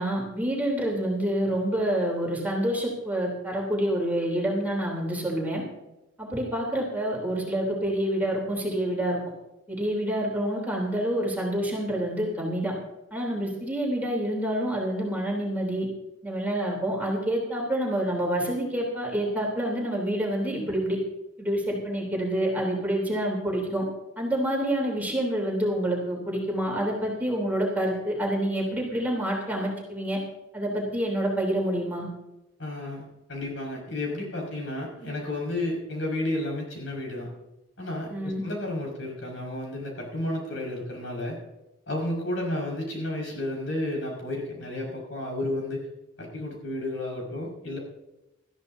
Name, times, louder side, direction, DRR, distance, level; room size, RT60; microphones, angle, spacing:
voice 1, 0.0-5.6 6.2-9.2 9.7-12.7 13.1-15.9 16.2-21.0 21.4-23.8 24.2-30.2 30.5-32.1 38.1-38.4, right 1 dB, 10° right, -3 dB, 3.4 m, -27 dB
voice 2, 32.6-37.3 37.8-41.4 41.9-45.9 46.2-47.8, left 1 dB, 70° left, -1 dB, 5.6 m, -32 dB
20.0 x 13.5 x 2.7 m, 0.96 s
head